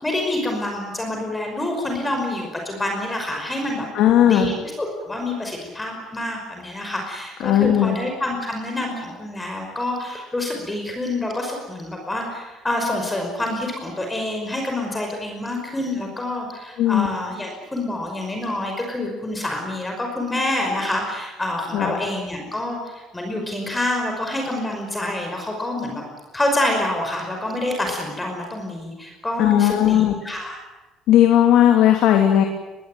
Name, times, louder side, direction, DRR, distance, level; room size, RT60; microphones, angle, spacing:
voice 1, 0.0-3.9 4.2-26.0 26.3-30.6, left 1 dB, 10° left, 2 dB, 5.5 m, -27 dB
voice 2, 3.9-4.5 7.4-8.0 16.8-17.1 21.7-22.0 29.4-30.1 31.1-32.4, left 11 dB, 65° left, 3 dB, 3.1 m, -16 dB
23.0 x 22.0 x 9.4 m, 1.1 s
cardioid pair, 150°, 0 cm